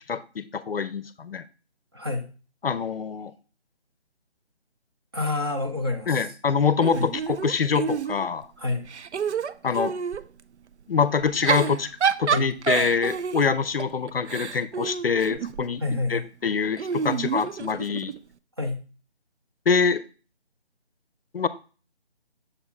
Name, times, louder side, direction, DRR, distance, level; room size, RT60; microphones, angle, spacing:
voice 1, 0.1-1.4 2.6-3.3 6.1-8.5 9.6-9.9 10.9-11.9 12.2-15.8 16.1-18.1 19.7-20.0 21.3-21.5, left 5 dB, 60° left, 15 dB, 0.6 m, -25 dB
voice 2, 1.9-2.3 5.1-6.3 7.0-7.1 8.6-8.9 12.2-12.5 15.8-16.3 17.0-17.2 18.6-18.8, left 2 dB, 25° right, 3 dB, 0.6 m, -28 dB
Giggle / Chuckle chortle, 6.8-8.4 8.9-10.3 11.2-15.7 16.8-18.2, right 7 dB, 85° right, 0.5 m, -28 dB
6.8 x 4.3 x 3.7 m, 0.36 s
figure-of-eight pair, 155°, 33 cm